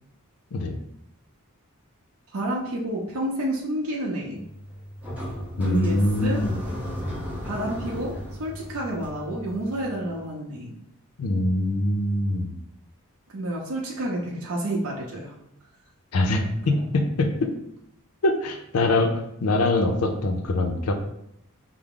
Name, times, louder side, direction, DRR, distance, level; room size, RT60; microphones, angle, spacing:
voice 1, 2.3-4.4 5.6-6.4 7.4-10.8 13.3-15.3, right 1 dB, 80° right, -2 dB, 0.6 m, -29 dB
sound 1, 4.4-10.3, equal, 10° right, 0.7 m, -35 dB
voice 2, 5.6-6.5 11.2-12.6 16.1-16.4 16.7-17.5 18.2-20.9, left 2 dB, 80° left, 5 dB, 0.5 m, -23 dB
4.7 x 2.0 x 3.7 m, 0.77 s
head